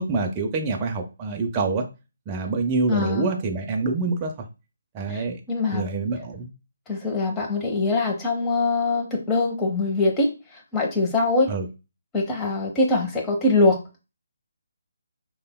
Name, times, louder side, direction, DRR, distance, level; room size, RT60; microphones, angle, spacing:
voice 1, 0.0-1.9 2.3-4.3 4.9-5.4 5.7-6.5 11.5-11.7, right 3 dB, 25° right, 3 dB, 0.4 m, -26 dB
voice 2, 2.9-3.3 5.1-5.9 6.9-11.5 12.1-13.8, left 3 dB, 15° left, 0 dB, 0.7 m, -23 dB
3.3 x 2.2 x 2.2 m, 0.28 s
figure-of-eight pair, 145°, 0 cm